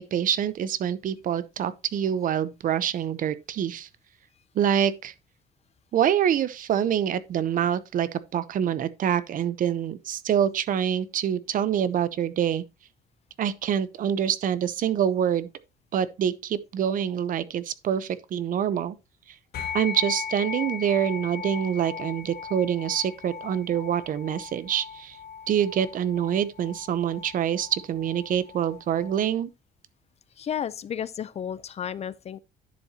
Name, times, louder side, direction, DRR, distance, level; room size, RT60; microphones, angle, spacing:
voice 1, 0.0-3.9 4.5-5.1 5.9-12.6 13.4-15.5 15.9-19.0 19.3-19.4 19.7-25.2 25.5-29.5, right 9 dB, 55° right, 0.8 m, -26 dB
sound 1, 19.5-29.2, left 7 dB, 70° left, 3.7 m, -38 dB
voice 2, 30.4-32.4, left 9 dB, 40° left, 0.5 m, -32 dB
10.5 x 7.2 x 2.8 m
cardioid pair, 110°, 17 cm